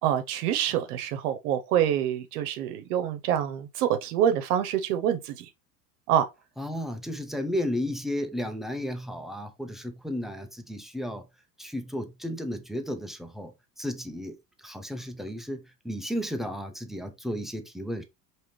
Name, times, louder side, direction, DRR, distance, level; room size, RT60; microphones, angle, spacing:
voice 1, 0.0-5.5 6.1-6.3, right 10 dB, 65° right, 0.9 m, -26 dB
voice 2, 6.6-11.3 11.6-18.0, equal, ahead, 0.4 m, -33 dB
5.0 x 2.9 x 3.0 m
hypercardioid pair, 80°, 50 cm